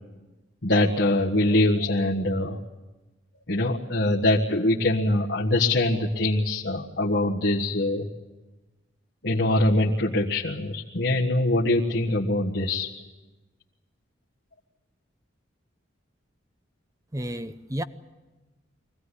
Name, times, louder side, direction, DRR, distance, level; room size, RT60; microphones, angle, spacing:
voice 1, 0.6-2.6 3.5-8.1 9.2-12.9, left 1 dB, 60° left, -3 dB, 1.6 m, -23 dB
voice 2, 17.1-17.8, right 1 dB, 15° right, 10 dB, 0.8 m, -31 dB
24.0 x 17.0 x 9.9 m, 1.1 s
head